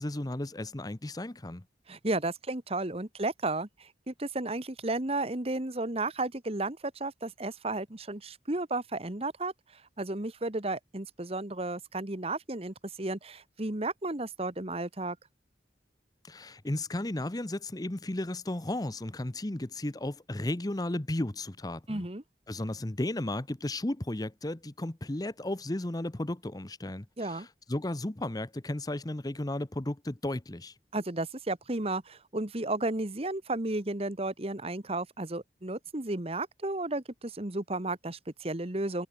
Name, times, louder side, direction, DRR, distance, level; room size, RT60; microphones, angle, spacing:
voice 1, 0.0-1.6 16.2-22.0 22.5-30.7, left 1 dB, 20° left, 0.8 m, -34 dB
voice 2, 1.9-15.2 21.9-22.2 27.2-27.5 30.9-39.1, right 2 dB, 35° right, 1.5 m, -33 dB
head